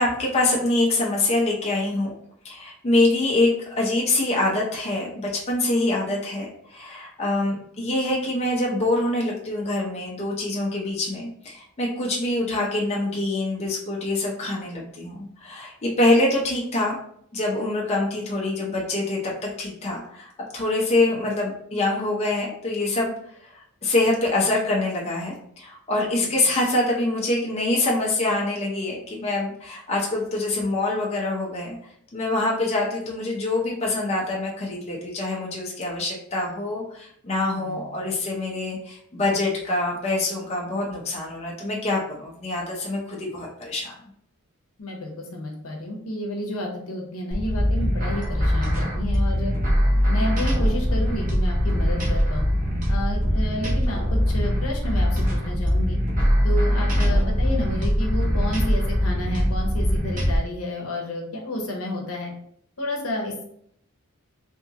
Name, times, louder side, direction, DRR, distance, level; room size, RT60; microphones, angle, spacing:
voice 1, 0.0-2.1 2.4-17.0 17.3-23.1 23.4-31.8 32.1-43.9, left 2 dB, 30° left, -3 dB, 0.5 m, -25 dB
voice 2, 37.4-37.8 44.8-49.5 50.1-52.5 52.9-56.0 56.4-62.3 62.8-63.4, left 1 dB, 75° left, 1 dB, 0.7 m, -31 dB
sound 1, 47.3-60.4, equal, 35° right, 0.7 m, -22 dB
2.7 x 2.5 x 2.7 m, 0.68 s
head